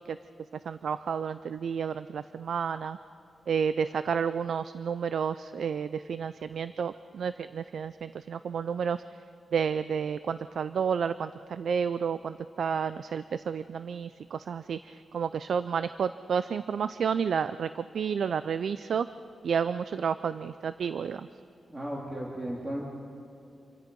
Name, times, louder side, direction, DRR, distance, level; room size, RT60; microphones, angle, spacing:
voice 1, 0.6-3.0 3.5-9.0 9.5-19.1 19.4-21.3, right 7 dB, 70° right, 13 dB, 0.4 m, -31 dB
voice 2, 21.7-22.8, right 1 dB, 20° right, -4 dB, 2.7 m, -35 dB
27.5 x 23.5 x 5.4 m, 2.7 s
wide cardioid pair, 145°, 0 cm